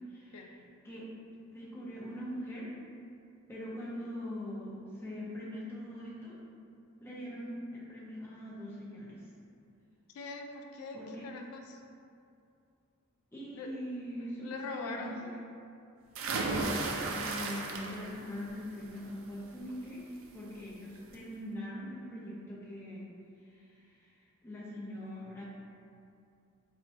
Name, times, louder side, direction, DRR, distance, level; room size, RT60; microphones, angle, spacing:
voice 1, 0.1-0.6 0.8-1.1 1.5-2.7 3.5-6.4 7.0-9.2 10.9-11.3 13.3-15.1 16.5-16.8 17.1-20.0 20.3-23.1 23.4-25.4, equal, 10° left, -6 dB, 0.5 m, -42 dB
voice 2, 10.1-11.8 13.5-13.7 14.4-15.3, left 3 dB, 80° left, 2 dB, 0.3 m, -42 dB
sound 1, 16.2-18.2 18.6-19.1 20.5-20.6 21.0-21.1, right 3 dB, 60° right, 0.3 m, -34 dB
4.1 x 2.1 x 2.6 m, 2.5 s
head